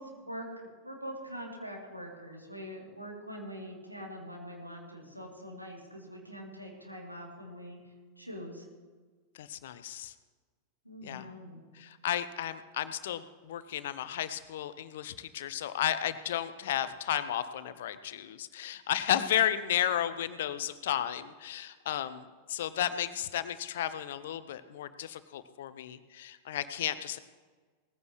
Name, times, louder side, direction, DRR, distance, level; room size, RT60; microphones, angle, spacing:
voice 1, 0.0-8.6 10.8-11.6, equal, 90° right, -1 dB, 3.1 m, -44 dB
voice 2, 9.4-10.1 11.0-11.3 11.7-27.2, left 11 dB, 55° left, 13 dB, 0.8 m, -33 dB
19.0 x 15.0 x 3.2 m, 1.4 s
figure-of-eight pair, 90°, 0 cm